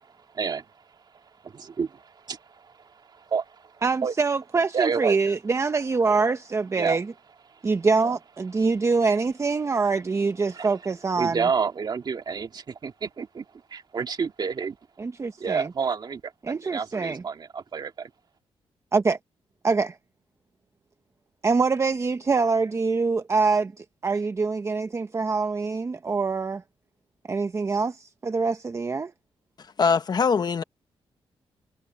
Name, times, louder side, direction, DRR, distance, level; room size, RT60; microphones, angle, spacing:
voice 1, 0.0-0.7 1.4-4.5 4.7-5.2 5.7-5.8 6.1-6.2 6.7-7.1 7.5-7.8 8.5-8.9 9.6-9.8 10.3-14.8 15.4-16.3 16.6-18.1, right 6 dB, 45° right, 1.9 m, -31 dB
voice 2, 3.8-7.1 7.6-11.5 15.0-15.7 16.4-17.2 18.9-19.2 19.6-20.0 21.4-26.6 27.3-29.1, right 4 dB, 30° right, 0.8 m, -25 dB
voice 3, 29.8-30.6, left 5 dB, 45° left, 1.1 m, -22 dB
wide cardioid pair, 125°, 10 cm